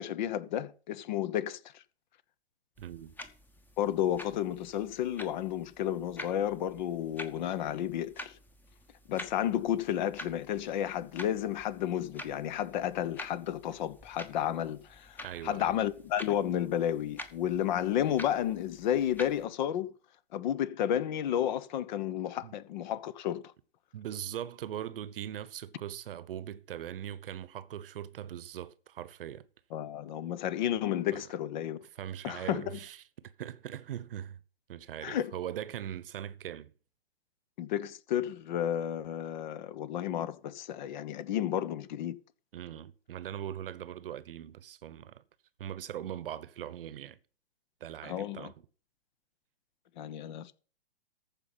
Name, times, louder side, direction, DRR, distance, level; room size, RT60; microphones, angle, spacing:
voice 1, 0.0-1.8 3.8-8.3 9.1-19.9 20.3-23.4 29.7-31.8 32.2-32.8 35.0-35.3 37.6-42.2 48.0-48.5 50.0-50.5, left 10 dB, 45° left, 0.9 m, -32 dB
sound 1, 2.8-19.5, left 2 dB, 5° left, 1.0 m, -49 dB
voice 2, 2.8-3.1 15.2-15.8 22.4-22.5 23.9-29.5 31.1-31.2 32.0-33.0 33.2-34.4 34.7-36.7 42.5-45.2 45.6-47.2 47.8-48.5, right 10 dB, 60° right, 0.9 m, -40 dB
14.5 x 5.3 x 5.6 m
hypercardioid pair, 120°, 32 cm